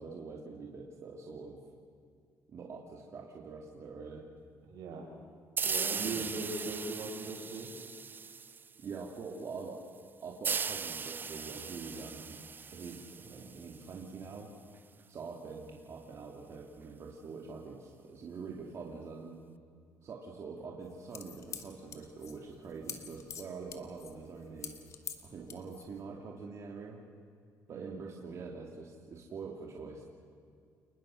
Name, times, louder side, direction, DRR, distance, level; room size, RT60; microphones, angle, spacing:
voice 1, 0.0-1.6 2.5-4.2 6.0-6.3 8.8-9.8 10.2-12.4 12.7-14.5 15.1-19.5 20.0-24.7 25.2-27.0 27.7-30.1, right 4 dB, 45° right, -1 dB, 2.7 m, -45 dB
voice 2, 4.6-5.1 5.6-7.7 27.7-28.0, right 3 dB, 80° right, -1 dB, 7.3 m, -39 dB
sound 1, 5.6-9.0 10.4-13.9, right 5 dB, 30° right, 0.6 m, -38 dB
sound 2, 20.8-26.0, left 7 dB, 50° left, 2.1 m, -46 dB
29.0 x 20.5 x 6.4 m, 2.3 s
cardioid pair, 115°, 7 cm